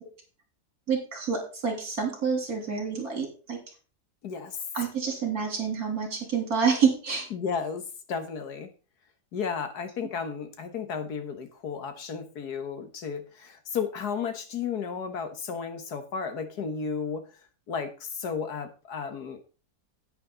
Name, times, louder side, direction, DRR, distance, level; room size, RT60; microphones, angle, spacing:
voice 1, 0.9-3.6 4.7-7.3, right 6 dB, 65° right, 2 dB, 3.7 m, -28 dB
voice 2, 4.2-4.6 7.3-7.8 8.1-8.7 9.3-17.2 17.7-19.5, left 6 dB, 75° left, 8 dB, 1.9 m, -33 dB
10.0 x 9.2 x 3.9 m, 0.34 s
omnidirectional pair, 1.7 m